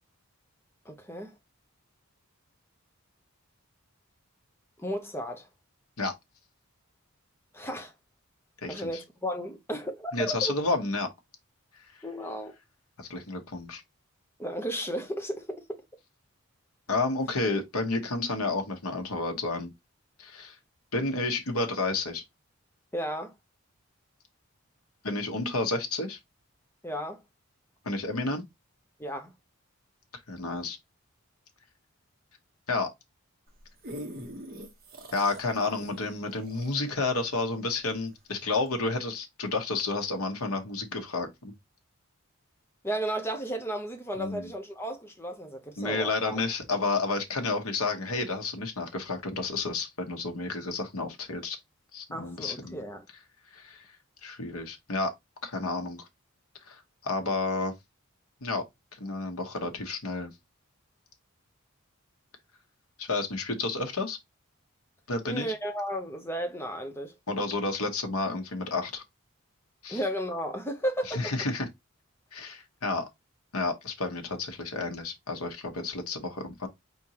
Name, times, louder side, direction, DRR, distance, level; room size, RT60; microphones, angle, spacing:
voice 1, 0.8-1.4 4.8-5.5 7.5-7.9 8.7-10.5 12.0-12.5 14.4-15.8 22.9-23.3 26.8-27.2 29.0-29.3 42.8-46.4 52.1-53.0 65.3-67.1 69.9-71.3, equal, 10° left, 0.8 m, -34 dB
voice 2, 10.1-11.1 13.0-13.8 16.9-19.7 20.2-20.6 20.9-22.2 25.0-26.2 27.8-28.4 30.3-30.8 32.7-32.9 35.1-41.5 44.2-44.5 45.8-51.6 51.9-52.8 53.5-53.9 54.2-55.1 55.4-56.1 56.7-57.7 58.4-58.6 59.0-60.3 63.0-64.2 65.1-65.5 67.3-69.0 69.8-70.0 71.1-71.7 72.3-73.1 73.5-76.7, left 3 dB, 80° left, 1.1 m, -31 dB
sound 1, 33.5-38.1 38.7-38.8, equal, 40° right, 1.1 m, -44 dB
4.4 x 3.7 x 2.9 m
head